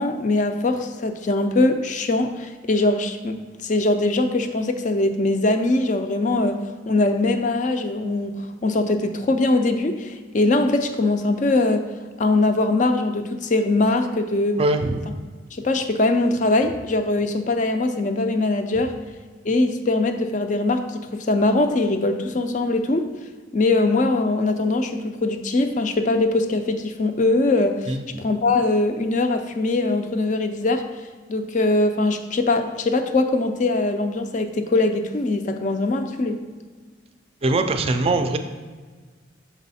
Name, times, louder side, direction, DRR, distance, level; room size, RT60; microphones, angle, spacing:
voice 1, 0.0-3.4 3.6-6.6 6.9-8.4 8.6-11.8 12.2-14.6 15.5-18.9 19.4-23.1 23.5-30.8 31.3-36.4, left 2 dB, 40° left, 7 dB, 0.4 m, -21 dB
voice 2, 14.6-15.0 27.9-28.3 37.4-38.4, right 2 dB, 30° right, 7 dB, 0.4 m, -22 dB
6.2 x 4.1 x 4.1 m, 1.5 s
head